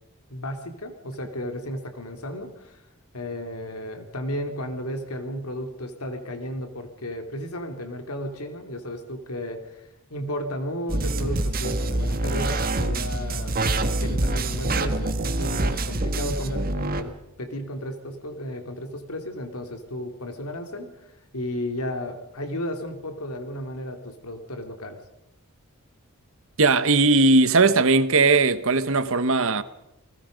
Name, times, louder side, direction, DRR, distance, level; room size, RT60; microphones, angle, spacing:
voice 1, 0.3-2.8 3.1-9.8 10.1-13.6 14.0-25.0, equal, 80° left, 2.9 m, -34 dB
sound 1, 10.9-17.0, right 2 dB, 40° right, 1.6 m, -26 dB
voice 2, 26.6-29.6, right 3 dB, 60° right, 1.1 m, -18 dB
29.5 x 19.5 x 5.2 m
head